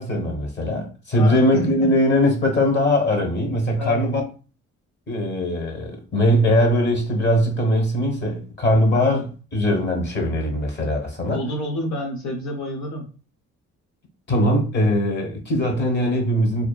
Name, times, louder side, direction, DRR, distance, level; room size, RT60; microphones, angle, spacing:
voice 1, 0.0-4.2 5.1-11.4 14.3-16.7, left 1 dB, 35° left, 1.0 m, -21 dB
voice 2, 1.1-1.9 3.8-4.2 8.9-9.3 11.3-13.1, left 1 dB, 70° left, 0.7 m, -29 dB
2.7 x 2.3 x 2.3 m
cardioid pair, 90°, 30 cm